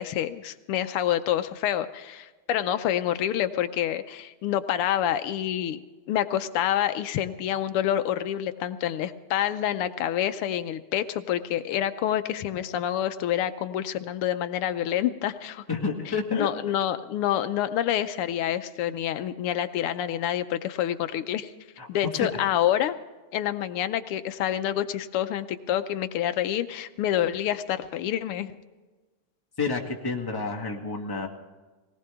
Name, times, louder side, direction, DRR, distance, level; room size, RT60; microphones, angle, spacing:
voice 1, 0.0-5.8 6.1-15.6 16.1-21.5 21.9-23.0 23.3-28.5, left 11 dB, 85° left, 10 dB, 1.6 m, -27 dB
voice 2, 15.7-16.5 21.8-21.9 22.2-22.3 29.6-31.3, left 4 dB, 10° left, 1 dB, 1.4 m, -29 dB
19.5 x 18.5 x 3.5 m, 1.2 s
omnidirectional pair, 2.4 m